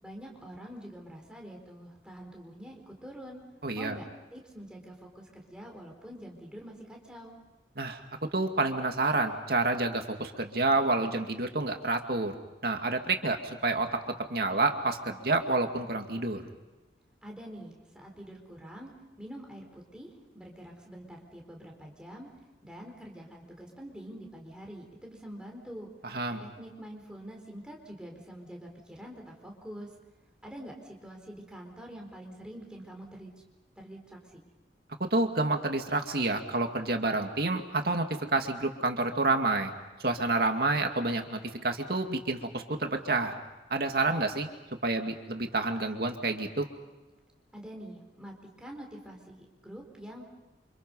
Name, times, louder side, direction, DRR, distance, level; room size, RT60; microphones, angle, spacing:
voice 1, 0.0-3.4 3.7-4.0 4.3-7.3 17.2-18.9 19.2-22.3 22.6-25.9 26.4-29.9 30.4-33.3 33.8-34.4 47.5-50.3, equal, 5° right, 0 dB, 4.5 m, -45 dB
voice 2, 3.6-4.0 7.8-8.0 8.3-12.3 12.6-13.9 14.3-16.4 26.0-26.4 35.1-38.1 38.3-39.7 40.0-43.4 43.7-44.5 44.8-46.7, right 2 dB, 60° right, 4 dB, 2.3 m, -28 dB
29.0 x 27.0 x 5.6 m, 1.1 s
head